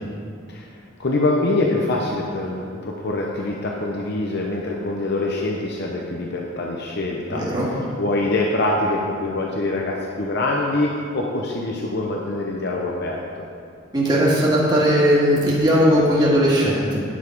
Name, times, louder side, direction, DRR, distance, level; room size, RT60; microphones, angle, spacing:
voice 1, 1.0-7.4 7.7-13.2, left 2 dB, 60° left, -1 dB, 0.8 m, -24 dB
voice 2, 7.3-7.7 13.9-17.0, equal, 25° right, -7 dB, 2.0 m, -18 dB
10.0 x 7.4 x 4.6 m, 2.3 s
head